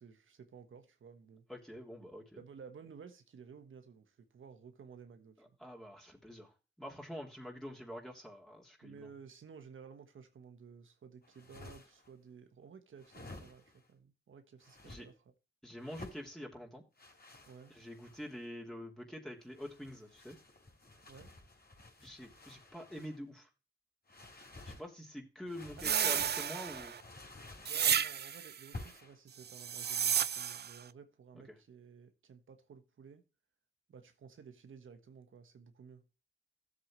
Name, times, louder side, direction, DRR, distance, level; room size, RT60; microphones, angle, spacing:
voice 1, 0.0-1.4 2.3-5.6 8.8-15.2 17.5-17.8 21.0-21.3 25.8-26.4 27.7-33.2 33.9-36.1, right 6 dB, 85° right, 1.3 m, -54 dB
voice 2, 1.5-2.4 5.6-6.5 6.8-9.1 14.8-15.1 15.6-16.8 17.7-20.4 22.0-23.5 24.6-27.0, equal, 5° left, 3.1 m, -46 dB
sound 1, 11.2-12.1 13.0-13.9 14.6-15.0 15.8-16.3 17.0-18.4 19.4-23.2 24.1-24.9 25.5-28.1 28.7-29.2, left 2 dB, 50° left, 4.3 m, -52 dB
sound 2, 25.8-27.0 27.7-28.5 29.5-30.8, right 8 dB, 55° right, 0.4 m, -32 dB
12.5 x 8.1 x 3.1 m
cardioid pair, 40°, 20 cm